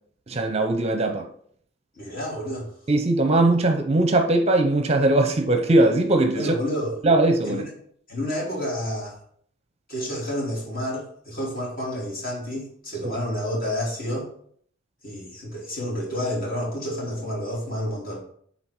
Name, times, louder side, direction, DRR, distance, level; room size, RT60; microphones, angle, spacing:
voice 1, 0.3-1.3 2.9-6.5 7.0-7.6 13.0-13.1, right 2 dB, 30° right, 0.6 m, -20 dB
voice 2, 1.9-2.7 6.3-7.0 7.4-7.7 8.1-9.2 9.9-14.3 15.0-18.2, equal, 45° left, 3.1 m, -29 dB
7.3 x 4.2 x 4.6 m
head